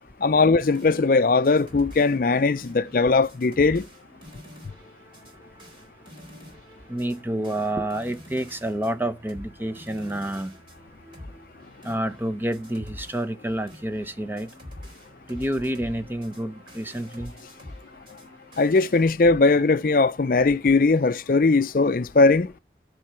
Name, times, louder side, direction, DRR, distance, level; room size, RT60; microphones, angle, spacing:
voice 1, 0.2-3.9 18.6-22.5, left 3 dB, 50° left, 0.4 m, -19 dB
sound 1, 0.5-19.0, left 1 dB, 30° right, 4.1 m, -46 dB
voice 2, 6.9-10.5 11.8-14.5 15.3-17.3, right 1 dB, 10° right, 0.7 m, -29 dB
10.5 x 4.5 x 6.8 m
head